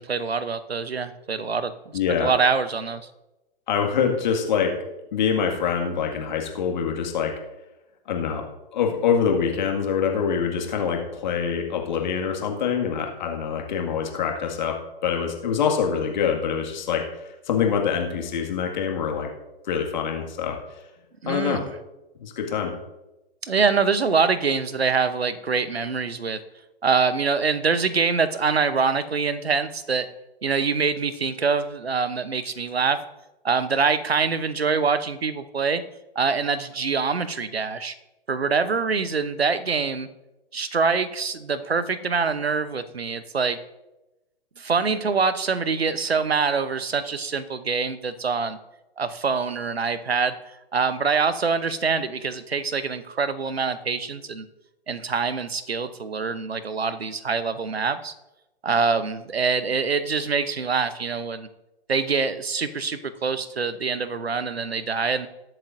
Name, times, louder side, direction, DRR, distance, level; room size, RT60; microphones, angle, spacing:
voice 1, 0.0-1.7 2.2-3.0 21.2-21.7 23.4-26.4 26.8-30.1 30.4-33.0 33.4-35.8 36.2-37.9 38.3-40.1 40.5-43.6 44.6-48.6 49.0-50.3 50.7-54.5 54.9-58.1 58.6-61.5 61.9-65.3, right 5 dB, 80° right, 13 dB, 0.9 m, -24 dB
voice 2, 1.9-2.3 3.7-4.7 5.1-7.3 8.1-8.4 8.7-14.7 15.0-17.0 17.5-19.3 19.7-20.6 21.3-21.6 22.2-22.7, left 7 dB, 50° left, 2 dB, 2.0 m, -25 dB
20.5 x 7.6 x 2.6 m, 0.99 s
figure-of-eight pair, 120°, 30 cm